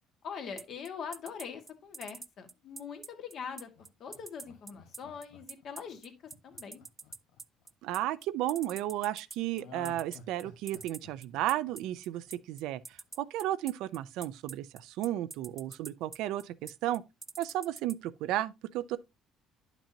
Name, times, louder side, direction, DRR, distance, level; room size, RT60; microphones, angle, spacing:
voice 1, 0.2-3.7 4.0-6.1 6.4-6.8, left 6 dB, 55° left, 1.7 m, -42 dB
sound 1, 0.6-17.9, right 4 dB, 20° right, 0.4 m, -45 dB
Laughter, 3.8-8.0 9.6-12.6 12.9-13.0, left 6 dB, 85° left, 1.2 m, -53 dB
voice 2, 7.8-17.0 17.4-19.0, right 14 dB, 80° right, 0.5 m, -33 dB
9.9 x 6.0 x 2.7 m
cardioid pair, 105°, 0 cm